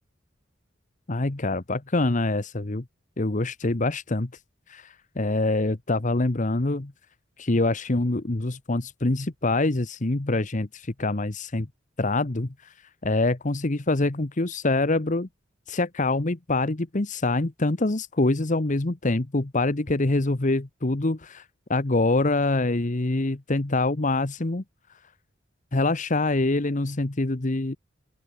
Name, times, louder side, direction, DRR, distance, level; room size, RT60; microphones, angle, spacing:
voice 1, 1.1-2.8 3.2-4.3 4.7-6.9 7.4-11.7 12.0-12.7 13.0-15.3 15.7-21.4 21.7-24.6 25.7-27.8, left 2 dB, 40° left, 1.1 m, -25 dB
open air
head